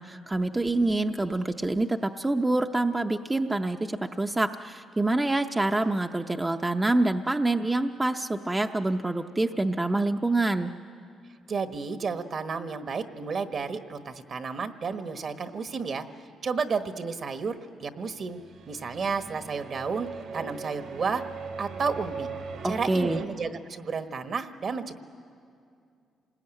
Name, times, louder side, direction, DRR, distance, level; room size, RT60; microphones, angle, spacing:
voice 1, 0.0-10.7 22.6-23.2, right 2 dB, 15° right, 5 dB, 0.6 m, -26 dB
voice 2, 11.5-16.0 16.4-17.5 17.8-18.4 18.7-21.2 21.6-22.3 22.6-25.0, right 5 dB, 50° right, 8 dB, 1.3 m, -32 dB
sound 1, 18.2-23.3, right 5 dB, 80° right, 2.8 m, -39 dB
27.5 x 20.0 x 9.0 m, 2.4 s
cardioid pair, 90°, 0 cm